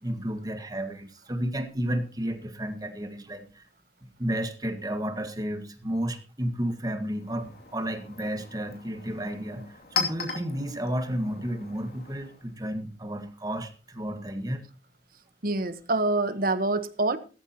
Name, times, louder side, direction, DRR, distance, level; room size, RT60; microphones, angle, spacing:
voice 1, 0.0-3.7 4.0-14.6, equal, 20° right, 1.7 m, -32 dB
Chink clink, 7.0-12.5, left 5 dB, 60° left, 2.8 m, -37 dB
voice 2, 15.4-17.2, right 2 dB, 55° right, 1.2 m, -26 dB
16.0 x 14.0 x 3.0 m
head